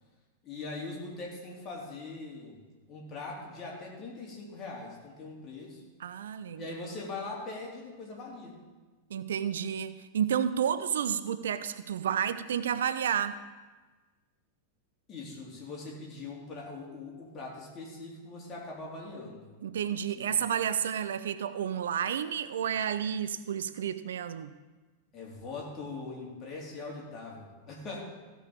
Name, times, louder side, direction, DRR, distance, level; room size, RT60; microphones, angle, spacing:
voice 1, 0.4-2.6 2.9-5.8 6.6-8.6 15.1-19.5 20.2-20.3 25.1-28.0, left 3 dB, 30° left, -3 dB, 3.8 m, -41 dB
voice 2, 6.0-6.7 9.1-13.4 19.6-24.5, right 8 dB, 65° right, 13 dB, 0.5 m, -31 dB
16.0 x 5.4 x 7.2 m, 1.3 s
figure-of-eight pair, 90°, 0 cm